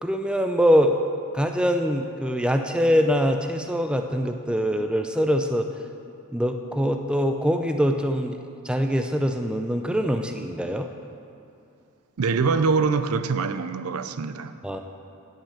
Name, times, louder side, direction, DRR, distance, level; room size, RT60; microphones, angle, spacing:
voice 1, 0.0-1.0 1.3-5.7 6.3-8.4 8.6-10.9 14.6-14.8, equal, 5° right, 5 dB, 0.4 m, -23 dB
voice 2, 12.2-14.5, right 4 dB, 85° right, 11 dB, 0.5 m, -24 dB
10.5 x 5.7 x 8.4 m, 2.6 s
head